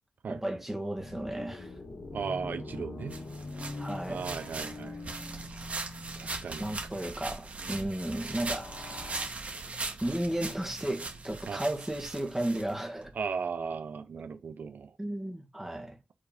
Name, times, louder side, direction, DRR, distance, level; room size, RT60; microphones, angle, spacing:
voice 1, 0.3-1.7 3.8-4.2 6.6-8.7 10.0-13.1 15.0-16.0, right 1 dB, 10° right, 1.5 m, -34 dB
sound 1, 1.0-7.0 8.0-9.3, left 2 dB, 75° left, 1.7 m, -43 dB
voice 2, 2.1-3.1 4.1-5.0 6.2-6.6 7.7-7.9 11.5-11.6 13.2-14.9, right 5 dB, 70° right, 0.6 m, -36 dB
sound 2, 3.1-13.1, right 3 dB, 45° right, 1.9 m, -40 dB
5.1 x 4.2 x 5.1 m
wide cardioid pair, 110°, 3 cm